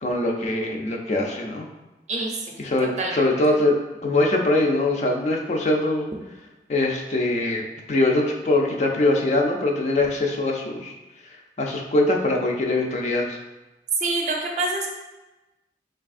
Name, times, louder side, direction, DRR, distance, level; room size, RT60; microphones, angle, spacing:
voice 1, 0.0-1.7 2.6-3.8 4.0-6.1 6.7-10.9 11.6-13.4, left 2 dB, 40° left, 1 dB, 0.4 m, -22 dB
voice 2, 2.1-2.6 3.0-3.2 14.0-14.9, right 2 dB, 40° right, 0 dB, 0.5 m, -26 dB
3.9 x 3.3 x 2.4 m, 1.1 s
head